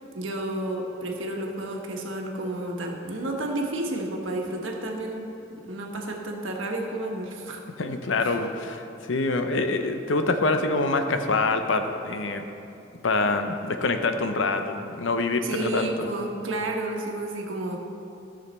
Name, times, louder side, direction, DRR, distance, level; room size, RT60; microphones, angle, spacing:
voice 1, 0.1-5.3 5.7-7.6 8.2-8.4 15.4-17.8, right 1 dB, 80° right, 0 dB, 1.3 m, -31 dB
voice 2, 7.8-12.5 13.0-16.1, left 3 dB, 75° left, 7 dB, 0.7 m, -25 dB
14.5 x 6.4 x 4.3 m, 2.7 s
head